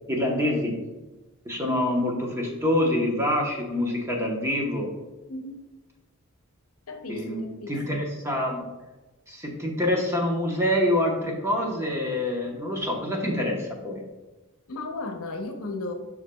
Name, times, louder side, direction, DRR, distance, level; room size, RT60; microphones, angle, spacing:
voice 1, 0.1-0.8 1.4-4.9 7.1-8.6 9.3-14.0, left 1 dB, 10° right, -1 dB, 1.0 m, -26 dB
voice 2, 5.3-5.6 6.9-8.0 14.7-15.9, left 2 dB, 75° left, 5 dB, 0.8 m, -35 dB
8.0 x 5.5 x 2.3 m, 1.1 s
head